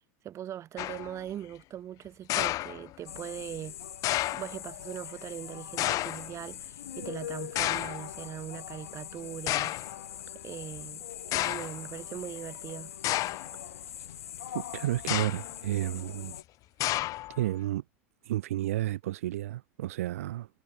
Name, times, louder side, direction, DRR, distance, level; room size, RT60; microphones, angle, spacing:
voice 1, 0.2-3.8 4.3-9.7 10.4-11.0 11.3-12.9, right 11 dB, 40° right, 3.1 m, -40 dB
sound 1, 0.8-1.2 2.3-3.2 4.0-4.6 5.8-6.3 7.6-8.1 8.9-9.0 9.5-9.9 10.8-10.9 11.3-11.8 13.0-13.6 15.0-15.6 16.8-17.4, left 17 dB, 50° left, 1.0 m, -31 dB
sound 2, 3.1-16.4, left 10 dB, 85° left, 1.1 m, -43 dB
voice 2, 14.5-16.4 17.4-17.8 18.3-20.5, right 14 dB, 80° right, 0.5 m, -31 dB
hypercardioid pair, 90°, 8 cm